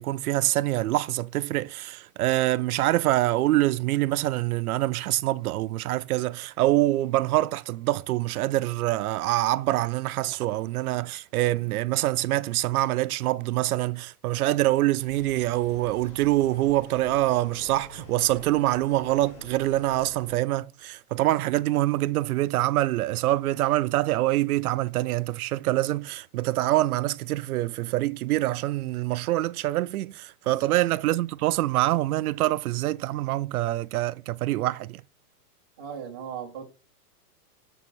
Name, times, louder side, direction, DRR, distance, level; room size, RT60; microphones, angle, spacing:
voice 1, 0.0-35.0, right 16 dB, 70° right, 0.5 m, -25 dB
sound 1, 15.0-20.4, left 3 dB, 45° left, 3.5 m, -47 dB
voice 2, 35.8-36.6, right 8 dB, 20° right, 0.3 m, -39 dB
7.2 x 3.6 x 4.4 m
supercardioid pair, 160°, 47 cm